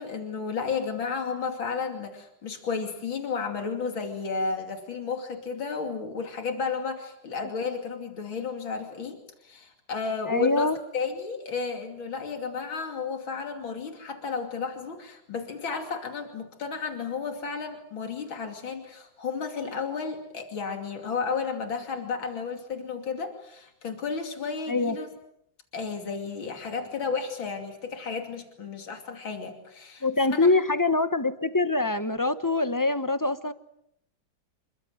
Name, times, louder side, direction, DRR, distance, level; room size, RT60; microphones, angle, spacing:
voice 1, 0.0-9.2 9.4-25.1 25.7-30.6, left 5 dB, 85° left, 3.5 m, -33 dB
voice 2, 10.3-10.8 24.7-24.9 30.0-33.5, left 3 dB, 15° left, 0.7 m, -24 dB
28.0 x 23.5 x 7.8 m
omnidirectional pair, 2.1 m